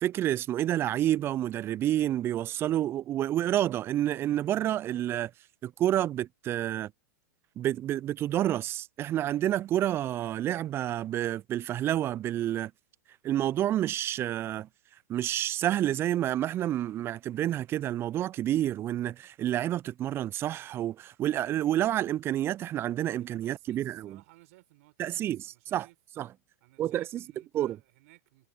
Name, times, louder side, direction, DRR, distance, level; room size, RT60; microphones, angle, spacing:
voice 1, 0.0-5.3 5.6-6.9 7.6-12.7 13.2-14.7 15.1-24.2 25.0-25.9 26.2-26.3 26.8-27.2 27.5-27.8, right 12 dB, 25° right, 0.3 m, -29 dB
voice 2, 23.2-26.0 26.6-28.5, right 22 dB, 55° right, 5.8 m, -59 dB
figure-of-eight pair, 100°, 9 cm